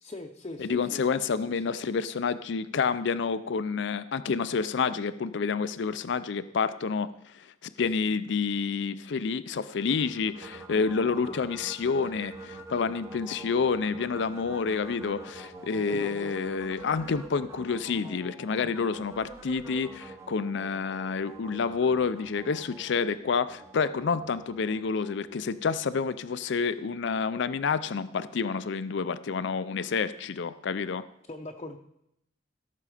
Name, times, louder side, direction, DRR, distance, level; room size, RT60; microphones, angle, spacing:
voice 1, 0.0-1.6 11.1-11.4 15.9-16.3 31.3-31.8, left 2 dB, 30° left, 2 dB, 0.7 m, -41 dB
voice 2, 0.6-31.0, left 5 dB, 65° left, 14 dB, 0.5 m, -29 dB
sound 1, 9.7-26.0, right 2 dB, 15° right, 0.9 m, -46 dB
17.0 x 6.7 x 5.0 m, 0.81 s
head